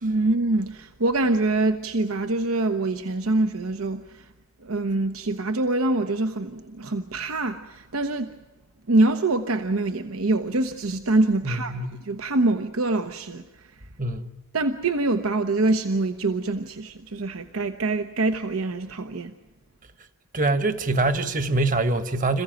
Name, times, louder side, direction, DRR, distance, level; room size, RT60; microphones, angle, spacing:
voice 1, 0.0-4.3 4.6-8.3 8.9-13.9 14.5-19.3, right 2 dB, 80° right, 0.9 m, -25 dB
voice 2, 11.4-12.0 14.0-14.3 20.3-22.4, right 2 dB, 40° right, 1.3 m, -24 dB
27.0 x 15.5 x 9.0 m
head